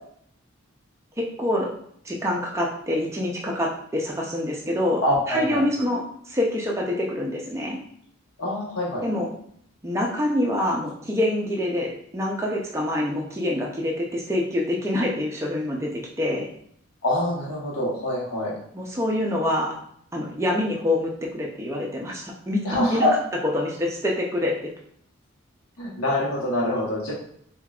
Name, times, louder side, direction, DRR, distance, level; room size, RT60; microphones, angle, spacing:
voice 1, 1.2-1.7 2.0-5.0 5.3-7.8 9.0-9.3 9.8-16.5 18.7-19.7 20.1-22.6 22.9-23.1 23.5-24.5, left 1 dB, 15° right, -2 dB, 0.5 m, -26 dB
voice 2, 5.0-5.6 8.4-9.0 17.0-18.5 22.6-23.1 25.8-27.1, left 1 dB, 85° left, -6 dB, 1.0 m, -24 dB
5.0 x 2.3 x 2.3 m, 0.67 s
head